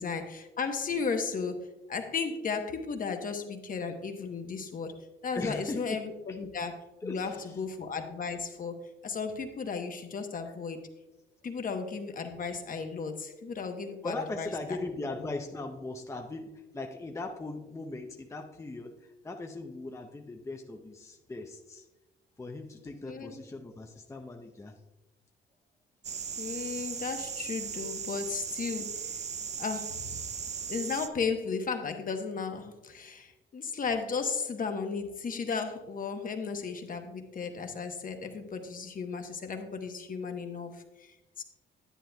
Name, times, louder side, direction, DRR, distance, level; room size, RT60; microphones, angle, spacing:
voice 1, 0.0-5.0 5.2-8.8 9.0-10.9 11.4-14.8 23.0-23.3 26.4-29.0 29.6-30.2 30.7-41.4, left 5 dB, 45° left, 6 dB, 1.0 m, -35 dB
voice 2, 5.3-6.0 6.3-6.4 7.0-7.6 14.0-21.9 22.4-24.8, left 2 dB, 15° left, 3 dB, 0.6 m, -39 dB
sound 1, 26.0-31.1, right 6 dB, 35° right, 0.5 m, -37 dB
10.0 x 9.0 x 2.3 m, 1.0 s
cardioid pair, 90°, 20 cm